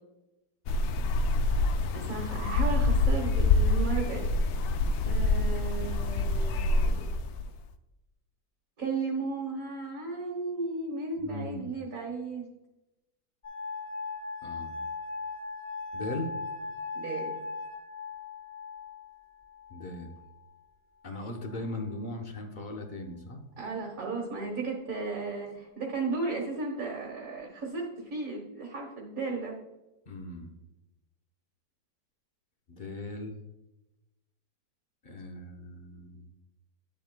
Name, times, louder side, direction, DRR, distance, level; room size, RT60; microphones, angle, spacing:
sound 1, 0.7-7.5, left 2 dB, 70° left, 0.9 m, -26 dB
voice 1, 1.9-4.3 5.0-7.1 8.8-12.5 16.9-17.4 23.6-29.5, right 3 dB, 50° right, -1 dB, 1.5 m, -35 dB
voice 2, 11.2-11.6 14.4-14.8 15.9-16.4 19.7-20.1 21.0-23.4 30.1-30.6 32.7-33.4 35.0-36.3, left 2 dB, 45° left, 3 dB, 0.6 m, -38 dB
sound 2, 13.4-20.4 21.2-21.8, left 4 dB, 20° left, 2.6 m, -39 dB
9.7 x 7.6 x 2.2 m, 0.97 s
omnidirectional pair, 2.0 m